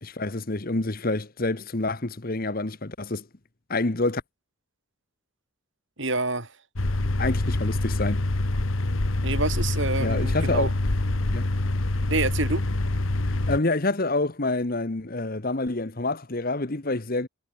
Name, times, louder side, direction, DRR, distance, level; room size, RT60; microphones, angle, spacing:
voice 1, 0.0-3.3 3.7-4.2 7.2-8.2 10.0-10.7 11.3-11.5 13.2-17.3, left 2 dB, 40° left, 1.2 m, -27 dB
voice 2, 6.0-6.5 9.2-10.7 12.1-12.6, right 2 dB, 60° right, 5.3 m, -27 dB
sound 1, 6.8-13.6, left 2 dB, 70° left, 1.4 m, -25 dB
head